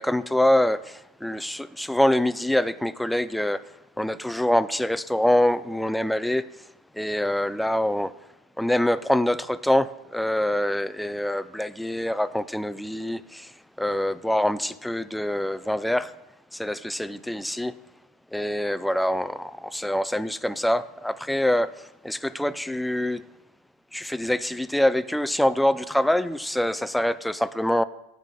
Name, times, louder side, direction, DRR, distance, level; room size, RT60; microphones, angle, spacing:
voice 1, 0.0-3.6 4.0-6.5 6.9-8.1 8.6-16.1 16.5-17.7 18.3-23.2 23.9-27.8, left 1 dB, 5° left, 0.4 m, -25 dB
14.5 x 5.6 x 3.8 m
supercardioid pair, 120°, 0 cm